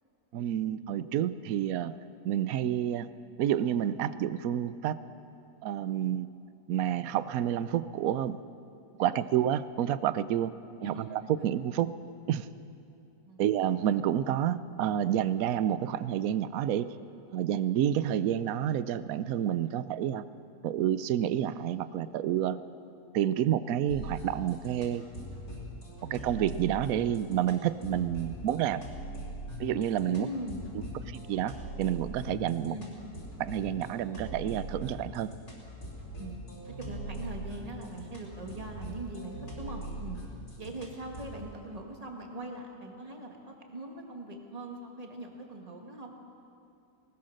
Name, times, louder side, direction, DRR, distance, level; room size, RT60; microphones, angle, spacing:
voice 1, 0.3-1.9 2.2-3.1 3.4-5.0 5.6-6.3 6.7-8.4 9.0-10.5 10.8-11.9 12.3-12.5 13.4-16.9 17.3-20.2 20.6-22.6 23.1-25.0 26.1-28.8 29.6-30.3 31.1-32.8 33.4-35.3, right 10 dB, 70° right, 14 dB, 1.0 m, -29 dB
sound 1, 23.9-41.4, right 1 dB, 60° left, 4.8 m, -42 dB
voice 2, 30.1-30.6 30.9-31.0 32.6-32.9 36.2-36.3 36.7-40.2 40.6-46.1, right 2 dB, 25° right, 1 dB, 2.0 m, -41 dB
20.0 x 19.5 x 6.6 m, 2.6 s
omnidirectional pair, 1.7 m